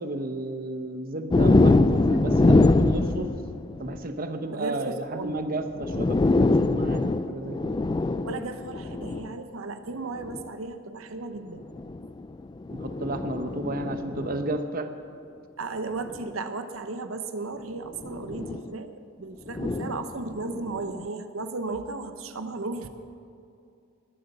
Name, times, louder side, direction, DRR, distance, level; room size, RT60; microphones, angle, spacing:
voice 1, 0.0-3.3 3.8-7.8 12.7-14.9, right 2 dB, 45° right, 7 dB, 0.8 m, -32 dB
sound 1, 1.3-4.0 5.3-5.4 5.7-9.3 10.2-10.5 11.6-14.6 16.1-16.2 17.9-18.7 19.5-20.9, left 2 dB, 20° left, 0.3 m, -24 dB
voice 2, 4.6-5.3 8.2-11.6 15.6-22.9, right 3 dB, 80° right, 9 dB, 0.9 m, -35 dB
21.0 x 8.1 x 6.8 m, 2.5 s
head